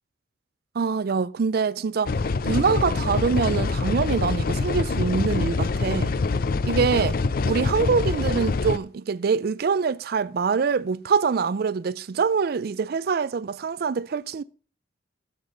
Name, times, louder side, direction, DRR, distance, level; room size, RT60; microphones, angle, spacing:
voice 1, 0.7-2.2 2.4-6.1 6.6-7.2 7.4-14.4, right 5 dB, 55° right, 0.4 m, -24 dB
sound 1, 2.1-8.8, left 3 dB, 50° left, 0.5 m, -25 dB
10.5 x 7.3 x 5.1 m
head